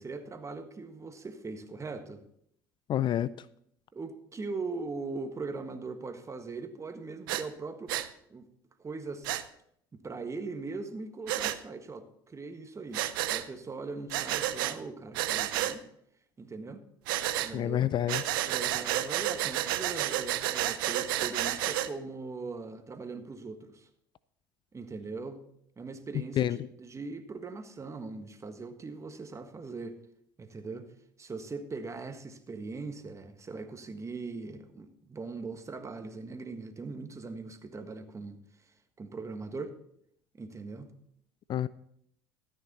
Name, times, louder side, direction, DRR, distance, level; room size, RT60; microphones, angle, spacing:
voice 1, 0.0-2.2 3.9-7.9 8.3-8.5 8.8-9.3 9.9-15.8 16.4-16.9 17.4-17.9 18.4-23.9 24.7-25.5 25.8-30.0 30.4-30.9 31.2-39.8 40.3-41.0, right 3 dB, 25° right, 8 dB, 1.5 m, -40 dB
voice 2, 2.9-3.3 17.5-18.2 26.4-26.6 41.5-41.7, left 11 dB, 45° left, 18 dB, 0.4 m, -27 dB
Breathing, 7.3-7.4 7.9-8.1 9.2-9.4 11.3-11.6 12.9-13.4 14.1-14.7 15.1-15.7 17.1-17.5 18.1-21.9, right 14 dB, 80° right, 0.6 m, -30 dB
13.5 x 9.3 x 4.1 m, 0.70 s
hypercardioid pair, 65°, 11 cm